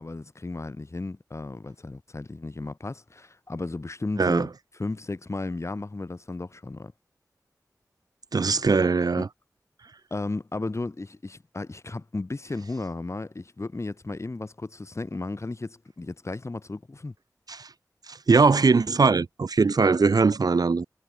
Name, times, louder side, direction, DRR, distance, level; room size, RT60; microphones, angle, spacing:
voice 1, 0.0-4.5 4.8-6.9 9.1-9.2 10.1-17.1, left 2 dB, 45° left, 3.0 m, -34 dB
voice 2, 4.2-4.5 8.3-9.3 17.5-17.7 18.1-20.9, right 4 dB, 75° right, 1.5 m, -21 dB
wide cardioid pair, 60°, 7 cm